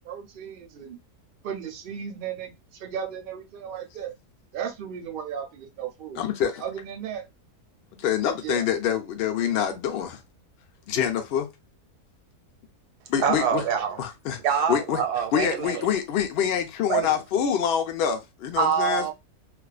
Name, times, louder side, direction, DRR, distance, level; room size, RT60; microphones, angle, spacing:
voice 1, 0.0-1.0 1.4-2.5 2.8-4.1 4.5-7.2 8.4-8.7, right 8 dB, 55° right, 0.6 m, -35 dB
voice 2, 6.2-6.6 8.0-10.2 10.9-11.5 13.1-13.6 14.0-14.4 14.7-15.0 15.3-19.1, left 9 dB, 65° left, 0.6 m, -26 dB
voice 3, 13.2-14.0 14.4-15.9 16.9-17.1 18.6-19.1, right 8 dB, 90° right, 1.2 m, -25 dB
2.4 x 2.4 x 2.3 m
omnidirectional pair, 1.6 m